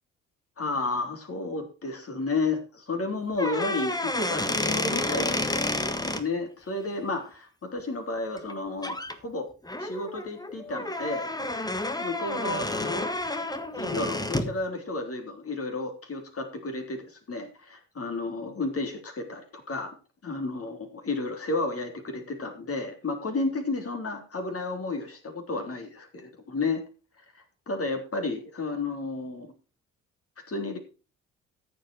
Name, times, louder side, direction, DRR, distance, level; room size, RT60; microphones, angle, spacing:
voice 1, 0.6-9.5 9.8-11.3 12.0-13.1 13.8-19.9 20.2-26.8 27.7-29.5 30.5-30.8, left 3 dB, 35° left, 4 dB, 3.5 m, -32 dB
sound 1, 3.3-6.2 8.4-8.5 8.8-9.1 9.6-14.6, left 2 dB, 10° left, 1.6 m, -30 dB
14.0 x 7.7 x 4.5 m, 0.33 s
figure-of-eight pair, 45°, 38 cm